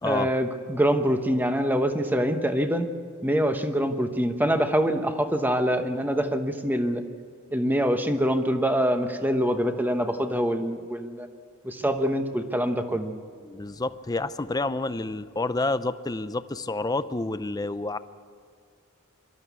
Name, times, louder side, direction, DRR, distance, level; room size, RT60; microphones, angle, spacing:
voice 1, 0.0-2.9 3.2-7.0 7.5-11.3 11.6-13.1, equal, 10° right, 7 dB, 1.1 m, -25 dB
voice 2, 13.4-18.0, left 2 dB, 20° left, 13 dB, 0.5 m, -29 dB
24.0 x 13.0 x 8.3 m, 2.2 s
head